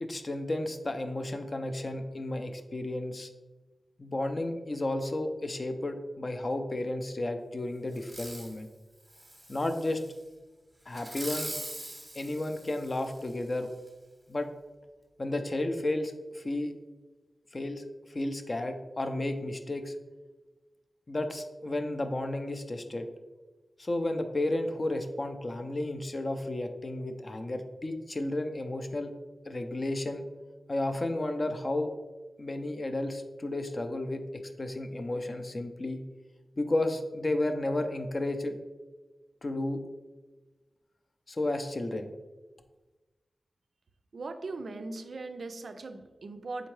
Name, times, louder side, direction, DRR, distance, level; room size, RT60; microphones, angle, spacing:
voice 1, 0.0-3.3 4.0-8.7 9.5-10.0 10.9-11.6 12.1-13.7 14.3-14.5 15.2-16.7 17.5-17.8 18.1-19.9 21.1-23.1 23.8-29.1 29.5-30.2 30.7-31.9 32.4-34.2 34.6-36.0 36.6-38.5 39.4-39.8 41.3-42.1, left 1 dB, 40° left, 7 dB, 0.4 m, -32 dB
Fireworks, 7.9-8.6 9.1-10.1 10.9-13.3 13.9-14.0, right 1 dB, 15° right, 0.8 m, -42 dB
voice 2, 44.1-46.7, right 3 dB, 70° right, 8 dB, 0.3 m, -39 dB
4.3 x 3.6 x 3.1 m, 1.2 s
wide cardioid pair, 100°, 0 cm